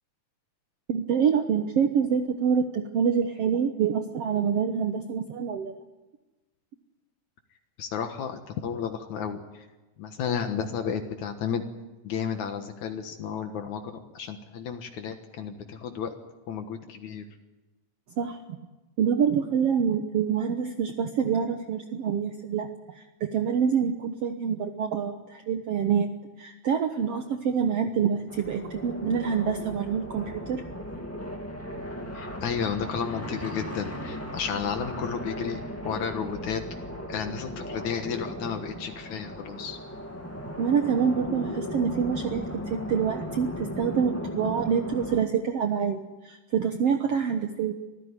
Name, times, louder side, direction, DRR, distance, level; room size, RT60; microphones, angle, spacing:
voice 1, 0.9-5.8 18.2-18.4 19.0-26.1 26.4-30.6 40.5-47.7, right 7 dB, 60° right, 6 dB, 1.9 m, -26 dB
voice 2, 7.8-9.7 10.0-11.6 12.0-13.8 14.1-16.1 16.5-17.3 32.1-36.6 37.1-39.8, left 7 dB, 70° left, 6 dB, 2.7 m, -32 dB
sound 1, 28.3-45.2, equal, 5° left, 1.8 m, -37 dB
25.0 x 15.0 x 9.8 m, 1.1 s
omnidirectional pair, 3.5 m